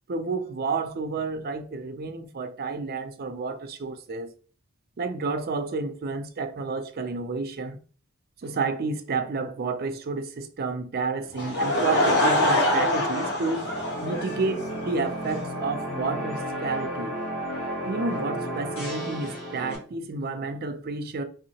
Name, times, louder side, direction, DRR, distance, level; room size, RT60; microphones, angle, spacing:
voice 1, 0.1-4.3 5.0-7.8 8.4-13.7 14.0-17.2 17.8-21.2, right 4 dB, 45° right, 0.5 m, -30 dB
Laughter / Crowd, 11.3-14.9, left 1 dB, 55° left, 1.1 m, -24 dB
sound 1, 13.3-19.8, equal, 90° left, 1.8 m, -33 dB
3.5 x 2.7 x 2.8 m
head